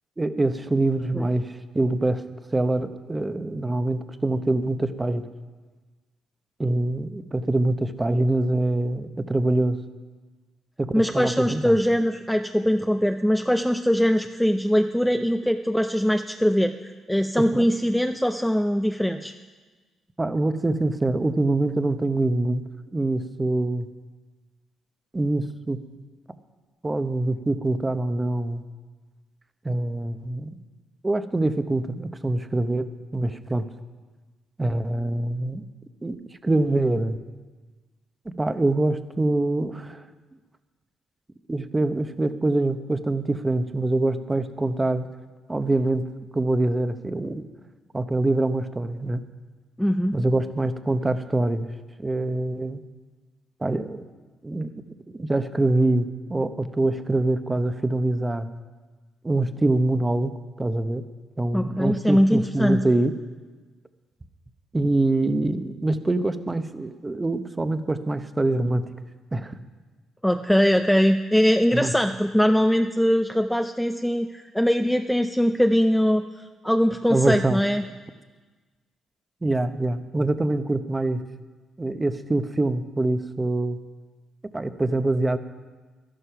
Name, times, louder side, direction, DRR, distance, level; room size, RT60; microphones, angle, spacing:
voice 1, 0.2-2.2 2.5-5.3 6.6-9.8 10.8-11.8 17.5-17.7 20.2-22.6 22.9-23.9 25.1-25.8 26.8-28.6 29.6-30.6 31.0-33.7 34.6-35.6 36.0-36.1 36.4-37.2 38.4-40.0 41.5-45.1 45.5-46.0 46.3-47.5 47.9-49.2 50.1-51.7 52.0-52.8 53.6-54.0 54.4-54.7 55.1-58.5 59.2-60.3 60.6-61.0 61.4-63.1 64.7-68.9 69.3-69.5 71.7-71.9 77.1-77.6 79.4-81.2 81.8-83.8 84.5-85.4, right 2 dB, 20° right, 10 dB, 0.8 m, -24 dB
voice 2, 10.9-19.3 49.8-50.2 61.5-62.8 70.2-77.8, equal, ahead, 7 dB, 0.5 m, -22 dB
12.5 x 11.5 x 5.8 m, 1.3 s
cardioid pair, 90°, 0 cm